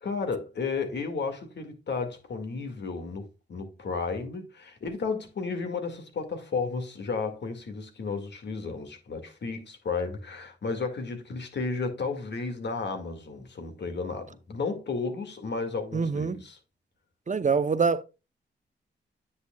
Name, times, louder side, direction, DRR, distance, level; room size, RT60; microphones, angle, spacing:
voice 1, 0.0-16.6, left 4 dB, 65° left, 2.0 m, -33 dB
voice 2, 15.9-16.4 17.3-18.0, right 5 dB, 40° right, 0.7 m, -25 dB
9.6 x 6.3 x 2.3 m
cardioid pair, 50°, 19 cm